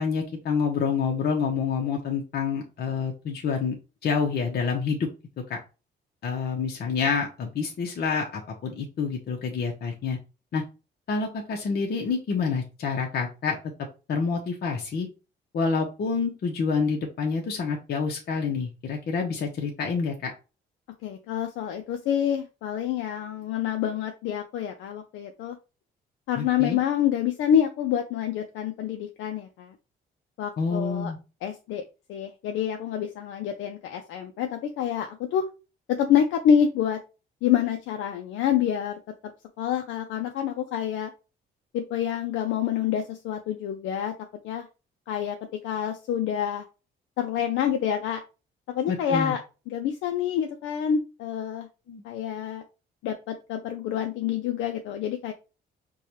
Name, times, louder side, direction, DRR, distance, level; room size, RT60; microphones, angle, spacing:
voice 1, 0.0-3.7 4.0-5.1 5.5-5.6 6.2-10.2 10.5-10.6 11.1-13.6 14.1-15.1 15.5-20.3 26.4-26.8 30.6-31.2 48.9-49.3 51.9-52.0, left 5 dB, 55° left, 1 dB, 0.8 m, -27 dB
voice 2, 21.0-25.6 26.3-29.7 30.4-31.1 31.4-31.8 32.1-35.4 35.9-37.0 37.4-39.0 39.6-41.1 41.7-44.1 44.4-44.7 45.1-45.4 45.6-46.6 47.2-48.2 48.7-49.4 49.7-51.7 52.0-52.6 53.0-55.3, left 9 dB, 85° left, 5 dB, 0.4 m, -27 dB
4.7 x 2.2 x 2.8 m, 0.31 s
cardioid pair, 90°, 20 cm